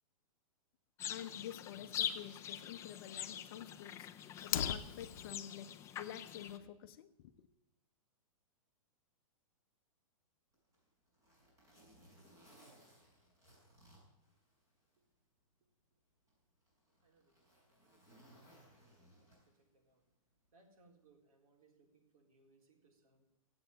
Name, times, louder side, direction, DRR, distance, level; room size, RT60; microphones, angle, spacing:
sound 1, 1.0-6.6, left 9 dB, 15° left, 0.5 m, -43 dB
voice 1, 1.1-5.7 6.0-7.5, left 11 dB, 40° left, 0.9 m, -49 dB
Fire, 4.4-5.4, left 9 dB, 70° left, 0.8 m, -38 dB
Zipper (clothing), 10.5-15.0 15.4-15.5 16.3-19.7 20.9-21.1, right 1 dB, 15° right, 5.8 m, -64 dB
voice 2, 17.0-20.0 20.5-23.3, right 3 dB, 75° right, 3.9 m, -70 dB
15.5 x 8.0 x 9.0 m
hypercardioid pair, 160°, 18 cm